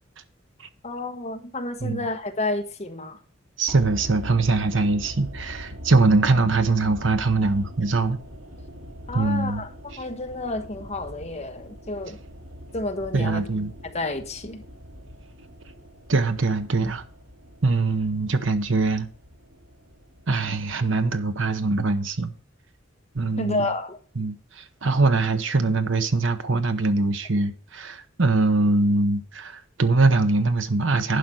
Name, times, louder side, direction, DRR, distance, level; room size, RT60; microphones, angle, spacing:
voice 1, 0.8-3.2 9.1-9.7 10.0-12.2 12.7-13.5 13.8-14.6 23.4-24.0, left 2 dB, 35° left, 1.2 m, -30 dB
voice 2, 3.6-8.2 9.1-9.6 13.1-13.7 16.1-17.0 17.6-19.1 20.3-22.3 23.1-23.7 24.2-31.2, right 3 dB, 65° right, 1.0 m, -22 dB
sound 1, 3.7-21.9 22.1-22.2, equal, 85° right, 2.2 m, -42 dB
11.0 x 5.1 x 6.2 m
head